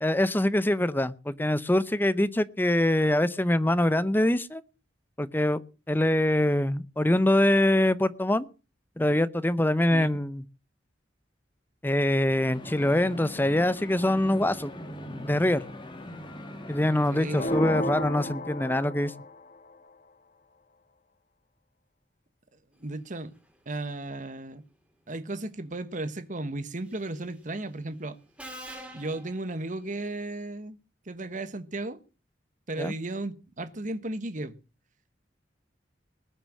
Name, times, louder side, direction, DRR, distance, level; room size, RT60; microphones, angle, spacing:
voice 1, 0.0-4.6 5.2-5.6 5.9-8.5 9.0-10.4 11.8-14.7 15.2-15.7 16.7-19.1 32.8-32.9, left 1 dB, 10° left, 0.7 m, -24 dB
sound 1, 12.5-17.6, left 1 dB, 30° left, 2.6 m, -41 dB
voice 2, 17.1-17.6 22.8-23.3 23.7-24.6 25.1-28.1 28.9-30.8 31.1-32.0 32.7-34.5, right 2 dB, 45° right, 1.4 m, -35 dB
sound 2, 17.3-19.4, left 1 dB, 45° left, 1.5 m, -32 dB
Subway metro underground, 26.9-27.2 28.4-30.1, right 1 dB, 5° right, 2.9 m, -45 dB
20.0 x 6.8 x 7.5 m
head